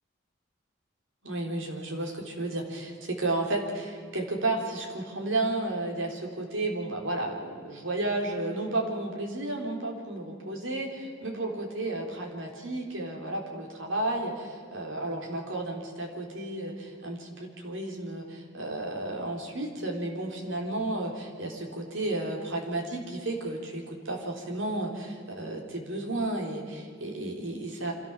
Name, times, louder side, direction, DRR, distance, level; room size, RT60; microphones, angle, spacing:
voice 1, 1.2-27.9, right 2 dB, 85° right, 0 dB, 3.9 m, -32 dB
26.0 x 14.0 x 7.2 m, 2.1 s
head